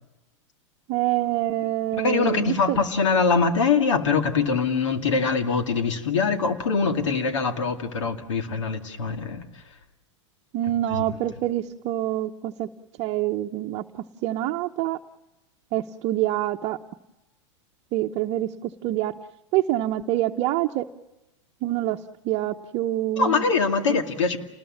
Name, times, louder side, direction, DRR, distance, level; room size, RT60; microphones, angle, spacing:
voice 1, 0.9-2.8 10.5-12.7 13.0-13.8 14.2-15.0 15.7-16.8 17.9-19.2 19.5-20.8 21.6-22.0 22.2-23.4 23.9-24.0, right 14 dB, 45° right, 3 dB, 0.9 m, -26 dB
voice 2, 2.0-9.5 10.9-11.1 23.2-24.4, left 5 dB, 75° left, 6 dB, 2.3 m, -23 dB
29.0 x 20.5 x 7.3 m, 0.97 s
hypercardioid pair, 100°, 16 cm